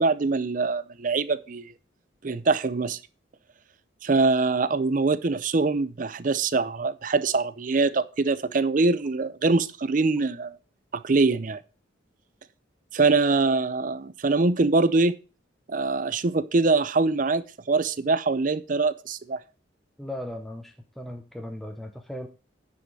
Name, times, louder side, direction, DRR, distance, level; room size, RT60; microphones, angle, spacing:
voice 1, 0.0-1.7 2.2-3.0 4.0-10.6 10.9-11.6 12.9-15.1 15.7-19.4, right 3 dB, 45° right, 0.5 m, -23 dB
voice 2, 20.0-22.3, left 1 dB, ahead, 0.6 m, -37 dB
9.4 x 5.3 x 4.8 m
head